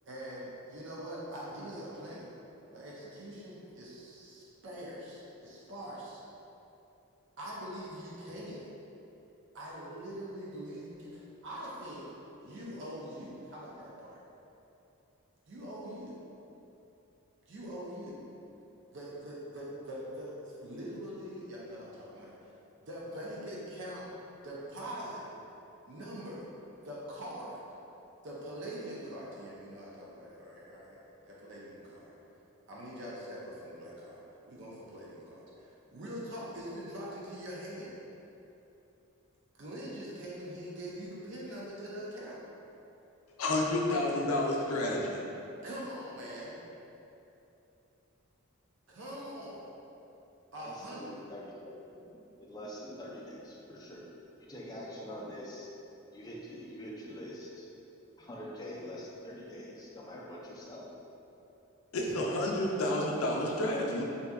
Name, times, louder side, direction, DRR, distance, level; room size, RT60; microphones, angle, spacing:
voice 1, 0.0-2.3 2.7-6.2 7.4-8.7 9.5-12.1 12.4-14.2 15.5-16.2 17.5-18.2 18.9-22.3 22.8-24.1 24.4-25.3 25.8-26.5 26.8-27.6 28.2-31.0 31.3-32.1 32.7-37.9 39.5-42.4 45.6-46.6 48.9-49.6 50.5-51.2, equal, 55° right, -6 dB, 0.5 m, -43 dB
voice 2, 43.4-45.2 61.9-64.0, left 1 dB, 80° left, -2 dB, 0.5 m, -30 dB
voice 3, 50.6-51.8 52.4-54.1 54.5-55.7 56.1-57.7 58.2-60.9, equal, 20° left, -5 dB, 0.3 m, -44 dB
2.7 x 2.3 x 3.4 m, 2.9 s
head